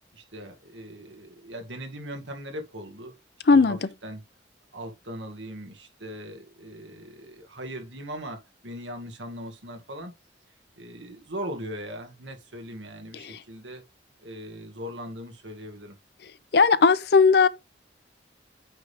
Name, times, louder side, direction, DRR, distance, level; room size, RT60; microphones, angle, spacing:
voice 1, 0.1-3.1 3.5-4.2 4.7-10.1 10.8-13.8 14.2-16.0, equal, 90° right, 2.0 m, -39 dB
voice 2, 3.5-3.8 13.3-13.4 16.5-17.5, left 4 dB, 60° left, 0.5 m, -17 dB
8.9 x 3.5 x 3.5 m
head